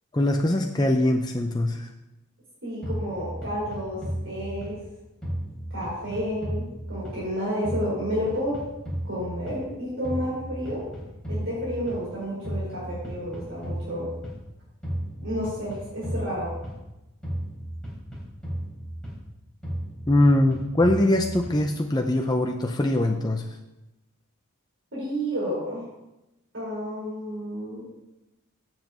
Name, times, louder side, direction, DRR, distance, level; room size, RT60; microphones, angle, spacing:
voice 1, 0.1-1.9 20.1-23.4, left 1 dB, 20° left, 3 dB, 0.6 m, -22 dB
voice 2, 2.6-4.8 5.7-8.6 9.0-10.9 11.3-14.1 15.2-16.5 24.9-25.9 26.5-27.8, equal, 60° right, -7 dB, 4.8 m, -31 dB
sound 1, 2.8-4.9 5.2-7.4 7.6-9.8 10.0-12.1 12.4-14.4 14.8-16.9 17.2-19.3 19.6-21.8, equal, 5° left, 3.5 m, -34 dB
7.5 x 7.5 x 7.8 m, 0.95 s
head